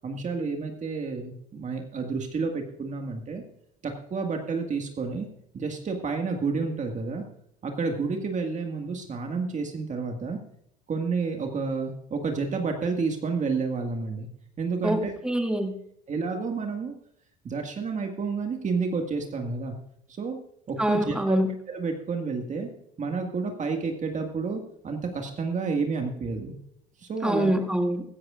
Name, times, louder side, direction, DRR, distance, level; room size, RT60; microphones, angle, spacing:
voice 1, 0.0-3.4 3.8-5.3 5.5-7.2 7.6-10.4 10.9-14.3 14.6-15.1 16.1-16.9 17.4-19.7 20.2-20.4 20.7-21.4 21.7-22.7 23.0-26.6 27.0-27.5, right 4 dB, 35° right, 3 dB, 1.9 m, -30 dB
voice 2, 14.8-15.7 20.8-21.5 27.2-28.0, equal, 5° right, 3 dB, 2.2 m, -25 dB
16.0 x 13.0 x 2.5 m, 0.73 s
hypercardioid pair, 80°, 21 cm